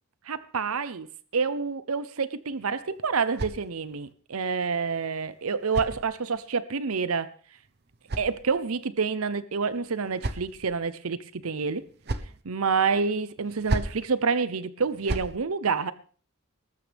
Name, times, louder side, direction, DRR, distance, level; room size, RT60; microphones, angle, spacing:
voice 1, 0.3-1.1 1.3-7.3 8.2-11.9 12.4-15.9, right 5 dB, 80° right, 0.8 m, -28 dB
sound 1, 2.5-4.1 5.1-6.6 7.6-8.9 9.7-10.8 11.7-12.4 13.4-14.1 14.8-15.4, right 2 dB, 50° right, 1.0 m, -36 dB
20.5 x 13.0 x 3.5 m
head